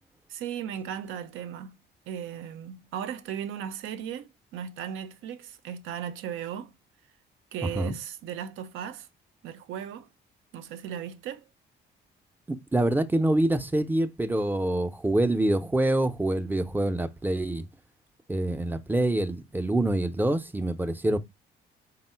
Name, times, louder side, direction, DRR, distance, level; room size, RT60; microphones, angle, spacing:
voice 1, 0.3-1.7 2.1-6.7 7.5-9.1 9.4-10.1 10.5-11.5, right 9 dB, 90° right, 0.5 m, -36 dB
voice 2, 7.6-7.9 12.5-17.6 18.3-21.2, right 1 dB, 10° right, 0.4 m, -26 dB
3.7 x 2.0 x 4.3 m
cardioid pair, 90°, 20 cm